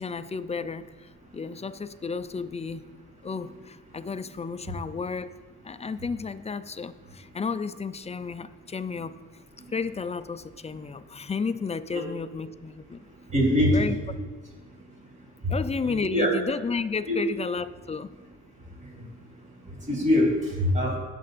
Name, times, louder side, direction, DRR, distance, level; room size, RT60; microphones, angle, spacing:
voice 1, 0.0-2.8 3.2-5.3 5.6-9.1 9.7-13.0 13.7-13.9 15.5-18.1, left 5 dB, 20° left, 12 dB, 0.5 m, -32 dB
voice 2, 13.3-13.9 15.8-16.3 17.1-17.2 19.9-20.3 20.6-21.0, left 1 dB, 25° right, -2 dB, 3.7 m, -22 dB
18.0 x 7.6 x 2.6 m, 1.3 s
cardioid pair, 90°, 30 cm